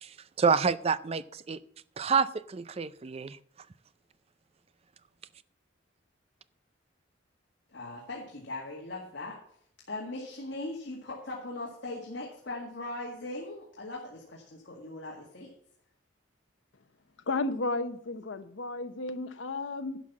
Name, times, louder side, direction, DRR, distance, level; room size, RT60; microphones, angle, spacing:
voice 1, 0.0-1.6 2.0-3.4, right 5 dB, 30° right, 16 dB, 0.4 m, -28 dB
voice 2, 7.7-9.4 9.9-15.5, left 2 dB, 70° left, -2 dB, 2.0 m, -39 dB
voice 3, 17.3-20.0, left 2 dB, 85° left, 11 dB, 0.9 m, -33 dB
11.0 x 5.7 x 7.3 m, 0.64 s
head